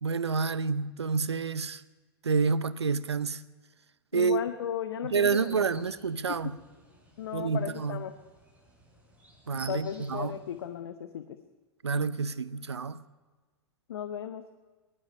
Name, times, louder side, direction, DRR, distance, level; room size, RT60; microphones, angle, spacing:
voice 1, 0.0-1.8 2.2-3.4 4.1-4.4 5.1-6.5 7.3-8.0 9.5-10.4 11.8-13.0, right 5 dB, 90° right, 0.6 m, -28 dB
voice 2, 4.1-5.8 6.3-6.6 7.2-8.1 9.7-11.4 13.9-14.4, left 9 dB, 70° left, 0.8 m, -36 dB
sound 1, 5.1-10.7, right 1 dB, 10° right, 4.8 m, -54 dB
18.5 x 12.0 x 5.4 m
hypercardioid pair, 100°, 14 cm